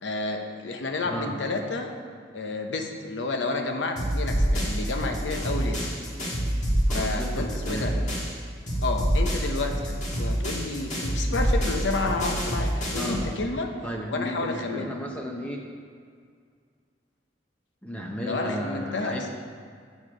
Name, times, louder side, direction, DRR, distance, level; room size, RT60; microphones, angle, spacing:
voice 1, 0.0-1.9 2.3-5.9 6.9-7.9 8.8-13.7 14.1-14.9 18.3-19.2, left 3 dB, 80° left, 4 dB, 0.8 m, -30 dB
voice 2, 1.0-1.4 6.9-8.1 12.9-13.3 13.8-15.7 17.8-19.3, equal, 5° left, 0 dB, 0.7 m, -34 dB
sound 1, 4.0-8.4 8.7-13.3, equal, 40° left, 1.6 m, -27 dB
7.3 x 6.2 x 5.0 m, 2.1 s
head